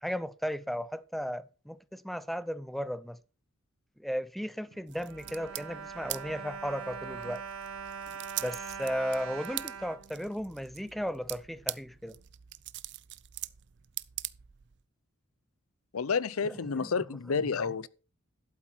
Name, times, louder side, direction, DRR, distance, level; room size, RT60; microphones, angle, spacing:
voice 1, 0.0-3.2 4.0-7.4 8.4-12.2 16.4-16.9 17.3-17.4, equal, ahead, 0.5 m, -35 dB
Bowed string instrument, 4.7-10.9 11.6-11.7 12.0-12.2, right 6 dB, 80° right, 1.1 m, -42 dB
sound 1, 4.9-14.8, right 16 dB, 55° right, 0.5 m, -43 dB
voice 2, 15.9-17.9, left 5 dB, 80° left, 0.6 m, -30 dB
11.5 x 8.5 x 4.4 m
head